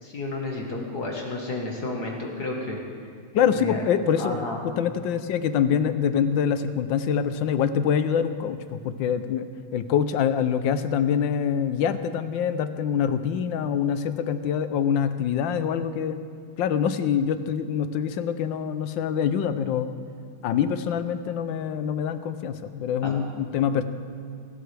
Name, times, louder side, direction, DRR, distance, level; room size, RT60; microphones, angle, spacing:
voice 1, 0.0-2.8 3.5-3.8 4.2-4.6 23.0-23.2 23.6-23.8, left 2 dB, 55° left, -1 dB, 2.0 m, -31 dB
voice 2, 3.3-9.5 9.7-16.2 16.6-19.9 20.4-23.8, left 8 dB, 75° left, 11 dB, 1.4 m, -25 dB
24.5 x 12.5 x 3.4 m, 2.3 s
omnidirectional pair, 2.2 m